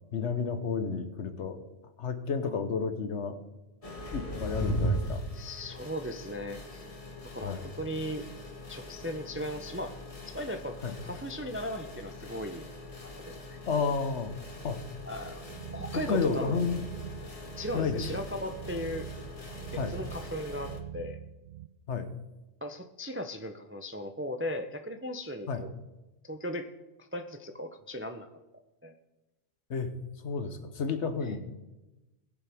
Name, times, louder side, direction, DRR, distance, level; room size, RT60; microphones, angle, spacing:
voice 1, 0.0-1.6 2.0-3.4 4.1-5.2 7.4-7.6 10.8-10.9 13.7-14.4 14.6-14.8 15.9-16.9 17.7-18.0 19.7-19.9 21.9-22.1 25.5-25.6 29.7-29.9 30.2-31.4, left 5 dB, 70° left, 9 dB, 1.2 m, -31 dB
sound 1, 3.8-20.8, equal, 30° left, 1.2 m, -40 dB
voice 2, 5.3-6.8 7.3-8.2 8.7-9.9 10.3-10.8 11.0-12.7 13.0-13.6 15.1-15.4 15.7-16.6 17.6-19.1 19.7-21.2 22.6-25.7 26.2-26.7 27.0-28.3 28.8-28.9 31.2-31.3, equal, 20° right, 7 dB, 0.4 m, -37 dB
sound 2, 15.2-21.7, right 10 dB, 60° right, 0.6 m, -43 dB
20.0 x 7.1 x 3.5 m, 1.0 s
omnidirectional pair, 1.3 m